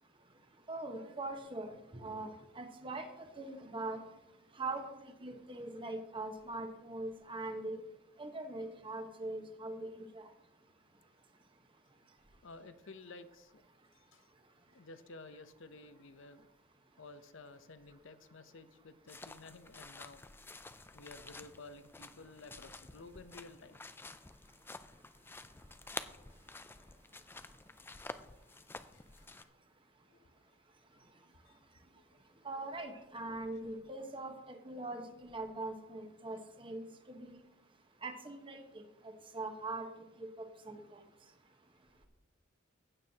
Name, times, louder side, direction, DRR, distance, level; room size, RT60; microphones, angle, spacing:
voice 1, 0.7-4.0 4.5-7.8 8.2-10.3 32.4-37.4 38.0-39.9 40.2-40.3 40.6-41.0, right 2 dB, 25° right, 5 dB, 1.1 m, -42 dB
voice 2, 12.4-13.6 13.9-14.3 14.7-16.5 17.0-20.2 20.9-23.8 26.8-26.9 28.9-29.3 30.1-30.3 31.5-31.6 32.0-32.2, left 3 dB, 65° left, 11 dB, 0.7 m, -53 dB
sound 1, 19.1-29.4, left 3 dB, 10° left, 0.3 m, -50 dB
15.5 x 9.0 x 2.8 m, 0.94 s
head